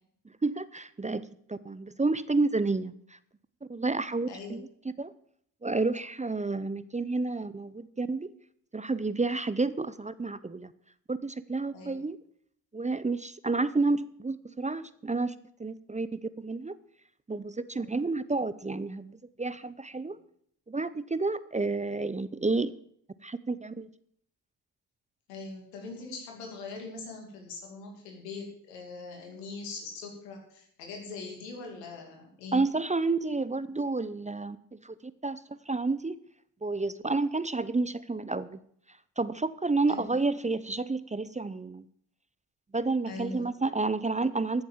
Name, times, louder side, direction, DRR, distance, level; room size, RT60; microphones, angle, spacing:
voice 1, 0.4-2.9 3.7-4.6 5.0-5.1 5.6-8.3 8.7-10.7 11.1-12.2 12.7-15.3 15.6-16.8 17.3-20.2 20.7-22.7 23.2-23.9 32.5-35.0 35.2-35.4 35.7-36.2 36.6-38.6 39.2-41.8 42.7-44.6, right 3 dB, 15° right, 15 dB, 0.7 m, -30 dB
voice 2, 4.3-4.6 11.7-11.9 17.8-18.0 19.9-20.2 25.3-32.6 39.9-40.1 43.1-43.5, left 3 dB, 90° left, 2 dB, 2.8 m, -42 dB
13.5 x 7.2 x 7.3 m, 0.65 s
hypercardioid pair, 50°, 47 cm